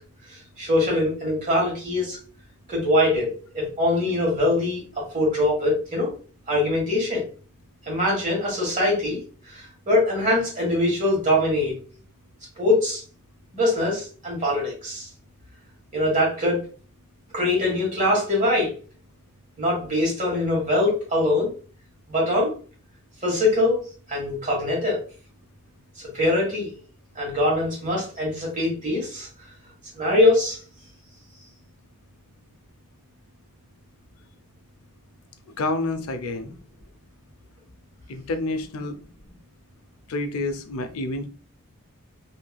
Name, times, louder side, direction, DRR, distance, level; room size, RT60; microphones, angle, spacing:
voice 1, 0.3-2.2 2.7-6.1 6.5-7.2 7.9-9.2 9.4-11.8 12.6-13.0 13.5-15.1 15.9-16.6 17.3-18.7 19.6-21.5 22.1-22.5 23.2-23.8 24.1-25.0 26.0-26.7 27.1-29.3 29.9-30.6, left 1 dB, 35° right, -3 dB, 1.4 m, -23 dB
voice 2, 35.6-36.6 38.1-39.0 40.1-41.3, left 2 dB, 80° left, 8 dB, 0.5 m, -28 dB
3.1 x 2.8 x 2.2 m, 0.38 s
head